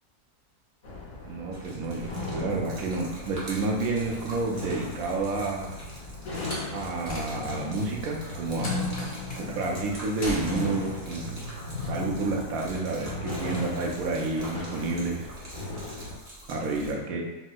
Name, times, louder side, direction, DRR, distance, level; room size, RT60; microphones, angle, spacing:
sound 1, 0.8-16.2, left 2 dB, 70° left, 1.2 m, -37 dB
voice 1, 1.2-5.8 6.7-8.8 9.4-11.4 11.8-15.3 16.5-17.2, right 3 dB, 70° right, 0 dB, 1.0 m, -30 dB
Gurgling / Liquid, 1.5-16.9, right 1 dB, 45° right, 0.7 m, -46 dB
Slam, 6.4-7.7 8.6-9.5 10.2-10.8, left 1 dB, 50° left, 0.9 m, -37 dB
4.3 x 2.0 x 2.3 m, 1.0 s
omnidirectional pair, 1.7 m